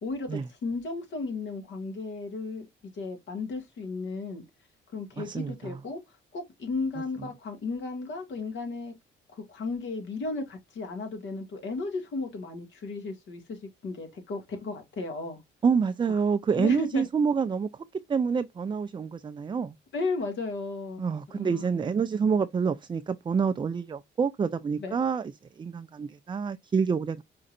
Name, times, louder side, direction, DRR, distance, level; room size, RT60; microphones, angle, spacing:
voice 1, 0.0-2.7 3.0-4.4 4.9-6.0 6.3-8.9 9.5-13.6 13.8-15.4 16.6-17.0 19.9-21.0 21.3-21.9 24.8-25.0, left 3 dB, 70° left, 2.0 m, -34 dB
voice 2, 5.2-5.8 7.2-7.3 15.6-19.7 21.0-27.2, right 6 dB, 25° right, 0.4 m, -27 dB
5.2 x 3.8 x 2.5 m
cardioid pair, 90°, 20 cm